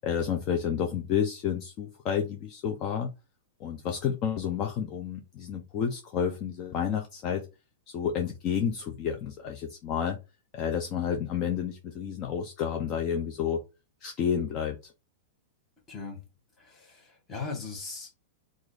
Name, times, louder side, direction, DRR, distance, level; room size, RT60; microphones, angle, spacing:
voice 1, 0.0-3.1 3.6-7.5 7.9-10.2 10.5-13.6 14.0-14.9, left 8 dB, 35° left, 0.6 m, -30 dB
voice 2, 15.9-16.2 16.6-18.1, left 4 dB, 20° left, 1.3 m, -39 dB
3.0 x 2.5 x 3.9 m
hypercardioid pair, 135°, 0 cm